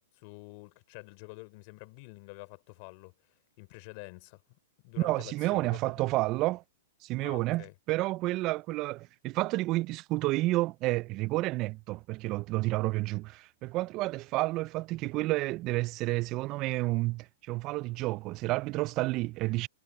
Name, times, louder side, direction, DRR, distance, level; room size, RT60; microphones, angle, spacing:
voice 1, 0.0-3.1 3.6-4.4 4.8-6.0 7.2-7.7, left 30 dB, 45° left, 3.8 m, -48 dB
voice 2, 5.0-6.6 7.0-19.7, right 20 dB, 35° right, 0.3 m, -30 dB
hypercardioid pair, 140°, 0 cm